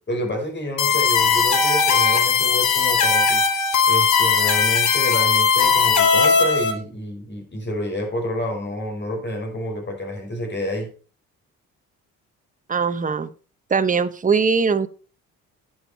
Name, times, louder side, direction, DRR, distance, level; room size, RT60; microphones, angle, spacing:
voice 1, 0.1-3.4 3.9-10.9, left 1 dB, 35° left, 3 dB, 5.3 m, -29 dB
sound 1, 0.8-6.7, left 5 dB, 65° left, 2.1 m, -18 dB
voice 2, 12.7-13.3 13.7-14.9, right 5 dB, 25° right, 10 dB, 1.1 m, -20 dB
11.0 x 7.4 x 4.3 m, 0.37 s
cardioid pair, 90°, 32 cm